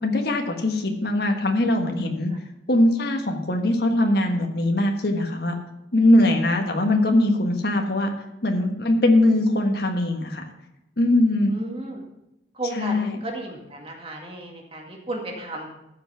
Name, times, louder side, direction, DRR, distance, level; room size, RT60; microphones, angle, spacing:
voice 1, 0.0-2.3 2.7-5.5 5.9-8.1 8.4-10.4 11.0-11.5 12.7-13.1, left 1 dB, 55° left, 3 dB, 1.5 m, -21 dB
voice 2, 11.5-12.0 12.6-15.7, right 1 dB, 30° right, 0 dB, 2.1 m, -34 dB
14.5 x 5.9 x 5.8 m, 0.88 s
head